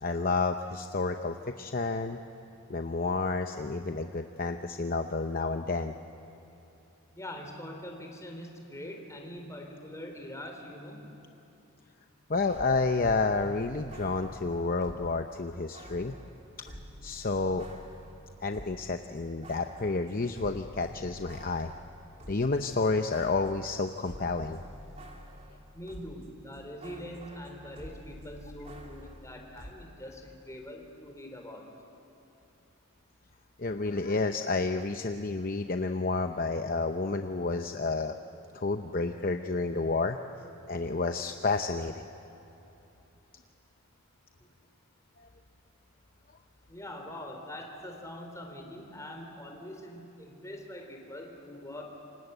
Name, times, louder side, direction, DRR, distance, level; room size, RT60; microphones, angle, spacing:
voice 1, 0.0-2.2 2.7-5.9 12.3-16.1 16.7-16.8 17.0-17.7 18.4-21.7 22.3-24.6 33.6-38.2 38.5-40.2 40.7-42.1 45.2-45.3, left 3 dB, 40° left, 6 dB, 0.8 m, -30 dB
voice 2, 7.2-11.0 25.7-31.6 46.7-51.9, left 1 dB, 15° left, 2 dB, 3.8 m, -43 dB
sound 1, 12.3-15.2 15.7-18.9 19.2-26.3 26.5-29.7, equal, 30° right, 2.9 m, -48 dB
28.0 x 26.0 x 8.1 m, 2.9 s
head